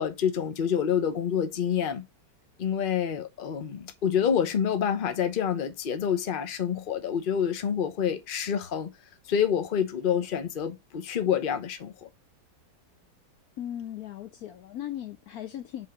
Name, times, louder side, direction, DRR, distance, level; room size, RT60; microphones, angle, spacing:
voice 1, 0.0-2.0 2.6-8.9 9.3-12.1, left 8 dB, 40° left, 0.8 m, -27 dB
voice 2, 13.6-15.9, left 11 dB, 65° left, 1.0 m, -37 dB
5.4 x 3.8 x 5.9 m
omnidirectional pair, 1.9 m